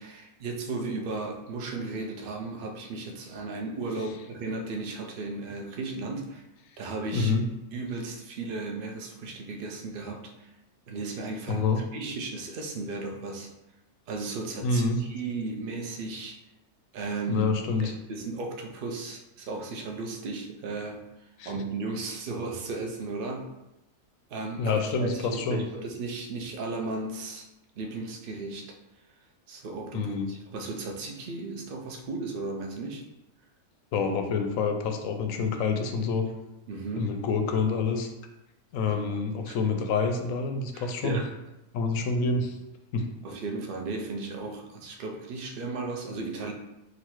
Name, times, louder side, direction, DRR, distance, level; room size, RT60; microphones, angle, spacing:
voice 1, 0.0-6.4 6.8-7.3 7.7-10.5 10.9-13.5 14.1-16.4 16.9-17.5 17.8-21.1 21.4-23.5 24.3-27.5 27.8-28.8 29.5-33.0 36.7-37.1 38.8-39.2 39.5-39.6 40.7-41.3 43.2-46.5, right 3 dB, 60° right, 2 dB, 0.5 m, -35 dB
voice 2, 7.1-7.4 11.5-11.8 14.6-15.0 17.3-17.9 21.4-21.5 24.6-25.6 29.9-30.3 33.9-36.3 37.0-38.1 38.7-41.2 41.7-42.6 42.9-43.1, left 4 dB, 70° left, 5 dB, 0.9 m, -27 dB
3.9 x 2.6 x 4.5 m, 0.91 s
omnidirectional pair, 1.6 m